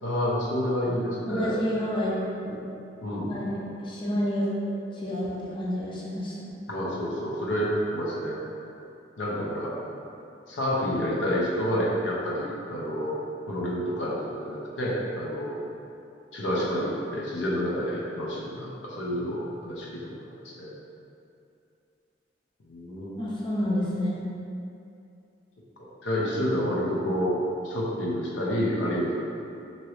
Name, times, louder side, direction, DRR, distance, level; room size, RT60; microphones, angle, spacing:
voice 1, 0.0-1.6 3.0-3.3 6.7-8.4 9.2-9.7 10.5-13.1 13.5-15.6 16.3-20.1 20.3-20.7 22.7-23.2 25.8-27.4 27.6-29.1, equal, 85° left, -5 dB, 0.6 m, -29 dB
voice 2, 1.2-2.2 2.4-2.6 3.3-4.5 4.9-6.5 23.2-24.2, equal, 25° left, -6 dB, 0.5 m, -29 dB
2.9 x 2.6 x 3.1 m, 2.6 s
head